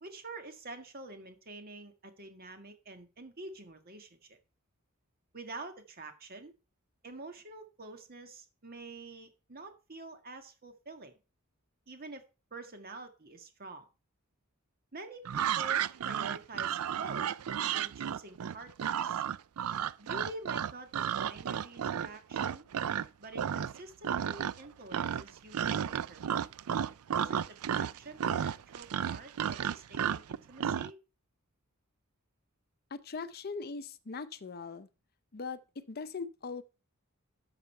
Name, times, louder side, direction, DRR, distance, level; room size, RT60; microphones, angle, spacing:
voice 1, 0.0-4.4 5.3-6.5 7.0-11.1 11.9-12.2 12.5-13.9 14.9-17.3 17.7-19.2 20.0-22.6 23.2-26.2 27.2-31.0, right 2 dB, 45° right, 1.8 m, -47 dB
sound 1, 15.2-23.1 23.3-23.8 24.0-24.7 24.9-30.9, right 9 dB, 90° right, 0.4 m, -33 dB
voice 2, 32.9-34.9 35.3-36.6, left 4 dB, 45° left, 0.6 m, -40 dB
12.0 x 6.7 x 4.4 m
head